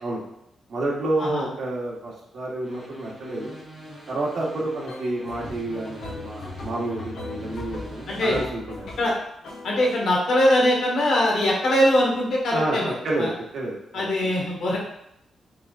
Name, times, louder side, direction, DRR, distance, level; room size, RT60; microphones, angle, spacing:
voice 1, 0.7-3.5 4.1-9.1 12.5-14.3, right 2 dB, 55° right, -3 dB, 1.4 m, -29 dB
sound 1, 2.6-8.4, equal, ahead, 1.4 m, -44 dB
sound 2, 4.9-9.2 9.4-10.0, left 2 dB, 85° left, 1.6 m, -38 dB
voice 2, 8.1-8.4 9.0-9.1 9.6-13.3 13.9-14.8, left 1 dB, 70° left, -2 dB, 1.3 m, -22 dB
5.9 x 3.6 x 2.4 m, 0.78 s
cardioid pair, 130°, 0 cm